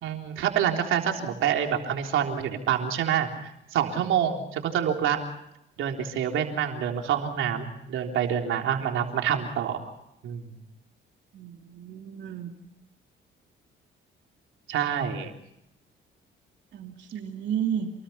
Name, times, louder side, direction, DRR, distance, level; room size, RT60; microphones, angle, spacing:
voice 1, 0.0-5.2 5.8-9.8 10.2-10.6 14.7-15.3, right 9 dB, 85° right, 3 dB, 3.7 m, -27 dB
voice 2, 11.3-12.5 16.7-17.9, right 8 dB, 65° right, 2 dB, 2.9 m, -32 dB
28.5 x 21.0 x 5.8 m, 0.83 s
cardioid pair, 90°, 20 cm